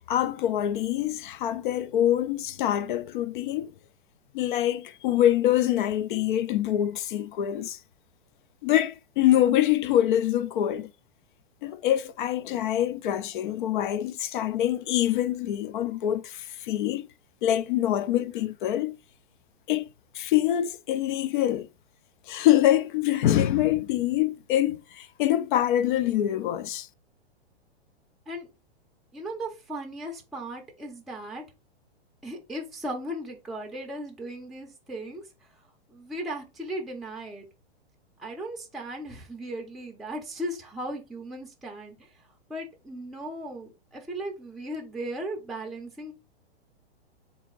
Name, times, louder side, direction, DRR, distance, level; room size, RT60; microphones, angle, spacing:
voice 1, 0.1-3.7 4.3-7.8 8.6-10.9 11.6-17.1 17.4-19.0 19.7-19.9 20.1-21.7 22.3-26.9, left 12 dB, 50° left, 0.5 m, -25 dB
voice 2, 29.1-31.4 32.2-35.2 35.9-37.5 38.2-42.1 42.5-46.1, right 1 dB, ahead, 0.6 m, -37 dB
3.6 x 2.8 x 3.9 m
hypercardioid pair, 115°, 32 cm